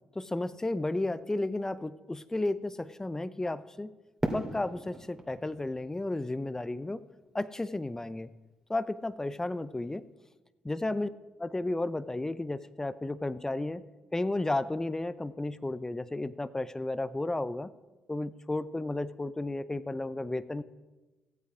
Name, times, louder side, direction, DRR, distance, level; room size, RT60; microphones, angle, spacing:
voice 1, 0.1-3.9 4.3-7.0 7.3-8.3 8.7-10.1 10.6-11.1 11.4-13.8 14.1-17.7 18.1-20.6, left 2 dB, 15° left, 15 dB, 0.6 m, -33 dB
Fireworks, 4.2-7.2, right 1 dB, 15° right, 2.5 m, -38 dB
15.0 x 8.4 x 4.9 m, 1.2 s
hypercardioid pair, 50°, 3 cm